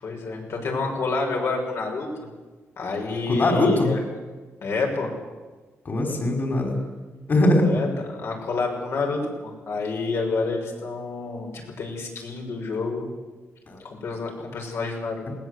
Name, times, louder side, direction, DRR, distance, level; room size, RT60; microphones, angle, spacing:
voice 1, 0.0-2.3 2.8-4.0 4.6-5.1 7.6-13.1 13.9-15.3, left 3 dB, 65° left, 1 dB, 6.1 m, -28 dB
voice 2, 3.3-3.9 5.8-6.8 7.3-7.7 13.7-13.8, left 1 dB, 40° left, 3 dB, 4.8 m, -21 dB
20.5 x 19.0 x 8.1 m, 1.3 s
cardioid pair, 125°, 5 cm